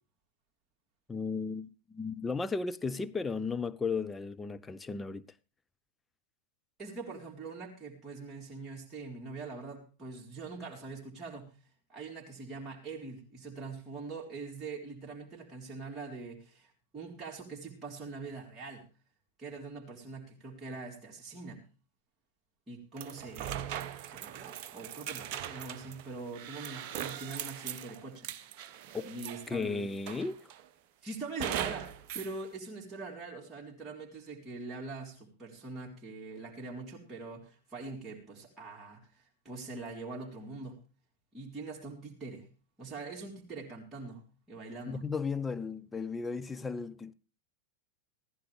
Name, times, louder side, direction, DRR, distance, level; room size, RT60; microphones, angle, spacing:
voice 1, 1.1-5.2 28.9-29.1 29.5-30.4 44.9-47.1, left 4 dB, 10° left, 0.6 m, -35 dB
voice 2, 6.8-11.5 11.9-18.8 19.4-21.6 22.7-28.3 29.0-29.9 31.0-40.8 41.3-42.5 42.8-45.1, right 3 dB, 15° right, 3.7 m, -43 dB
sound 1, 23.0-29.6 30.1-30.6 31.4-32.3, right 10 dB, 45° right, 0.9 m, -40 dB
15.5 x 15.5 x 3.4 m
figure-of-eight pair, 90°, 0 cm